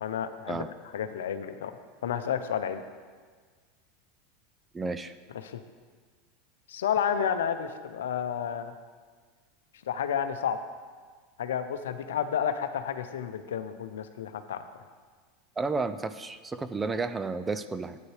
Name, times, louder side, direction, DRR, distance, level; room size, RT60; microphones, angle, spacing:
voice 1, 0.0-0.6 0.9-1.7 2.0-2.8 5.4-5.6 6.7-8.7 9.9-10.6 11.4-14.6, left 8 dB, 85° left, 9 dB, 0.7 m, -31 dB
voice 2, 4.7-5.1 15.6-18.0, right 3 dB, 15° right, 11 dB, 0.5 m, -32 dB
12.0 x 9.3 x 3.2 m, 1.6 s
hypercardioid pair, 105°, 0 cm